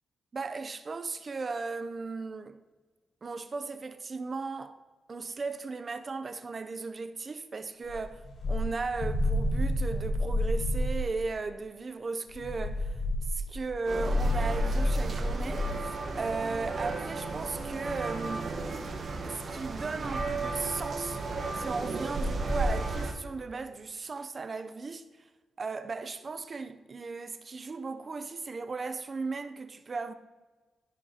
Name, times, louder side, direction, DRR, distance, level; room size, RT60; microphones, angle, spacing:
voice 1, 0.3-2.6 3.2-4.8 5.1-8.2 8.5-13.0 13.3-18.5 19.2-21.2 21.5-25.0 25.6-30.1, right 4 dB, 35° right, 0.5 m, -36 dB
sound 1, 7.9-11.1 12.3-15.8, left 1 dB, 70° left, 1.2 m, -29 dB
sound 2, 13.8-23.1, right 3 dB, 50° right, 1.2 m, -34 dB
15.0 x 5.1 x 2.9 m
cardioid pair, 125°, 0 cm